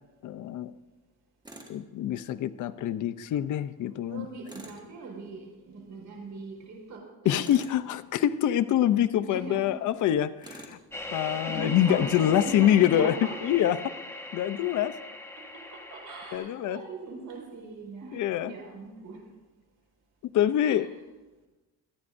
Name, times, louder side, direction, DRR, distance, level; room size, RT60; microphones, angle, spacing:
voice 1, 0.2-0.7 1.7-4.3 7.2-10.8 11.1-13.2 13.4-13.9 14.3-15.0 16.3-16.8 18.1-18.5 20.3-20.9, left 11 dB, 50° left, 12 dB, 0.6 m, -25 dB
Tools, 1.4-1.8 4.4-4.9 7.4-7.9 10.4-10.8, right 1 dB, 10° right, 1.6 m, -46 dB
voice 2, 4.1-7.5 9.2-9.8 11.2-13.3 14.8-14.9 15.4-19.2 20.6-20.9, right 3 dB, 50° right, -1 dB, 4.8 m, -40 dB
sound 1, 10.9-16.4, left 2 dB, 5° left, 1.0 m, -39 dB
27.0 x 9.6 x 2.6 m, 1.1 s
cardioid pair, 125°, 40 cm